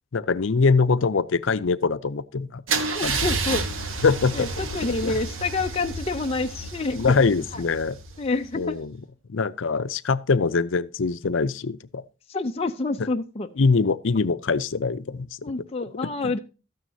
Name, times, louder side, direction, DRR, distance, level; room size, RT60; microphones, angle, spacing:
voice 1, 0.1-3.3 4.0-4.5 5.0-5.2 6.9-8.0 8.6-8.9 9.3-12.0 13.6-15.3 16.0-16.4, left 4 dB, 70° left, 0.6 m, -23 dB
Car / Engine starting / Idling, 2.7-8.5, right 3 dB, 85° right, 1.3 m, -30 dB
voice 2, 2.9-3.7 4.4-4.5 4.7-7.0 8.2-8.8 12.3-13.5 15.4-16.4, left 3 dB, 30° left, 0.5 m, -27 dB
13.0 x 9.3 x 2.8 m
head